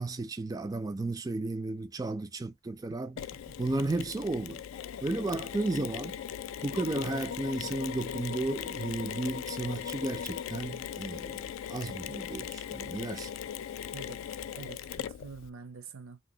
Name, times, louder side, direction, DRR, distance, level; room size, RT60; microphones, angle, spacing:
voice 1, 0.0-3.2 3.6-4.6 5.0-6.2 6.6-13.3, right 2 dB, 20° right, 0.3 m, -33 dB
voice 2, 2.9-3.7 13.9-16.2, right 5 dB, 80° right, 0.7 m, -47 dB
Mechanisms, 3.2-15.5, left 9 dB, 75° left, 0.3 m, -39 dB
2.8 x 2.8 x 2.7 m
head